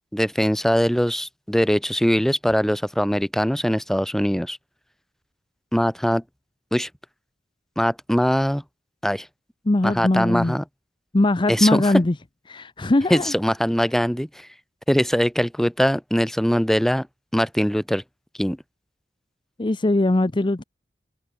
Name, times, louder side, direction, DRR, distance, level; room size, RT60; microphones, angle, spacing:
voice 1, 0.1-4.6 5.7-6.2 6.7-6.9 7.8-8.6 9.0-9.3 9.8-10.6 11.5-12.0 13.1-14.5 14.9-17.1 17.3-18.0 18.4-18.6, equal, ahead, 0.9 m, -21 dB
voice 2, 9.7-10.6 11.1-12.1 12.5-13.3 19.6-20.6, left 2 dB, 30° left, 0.7 m, -20 dB
head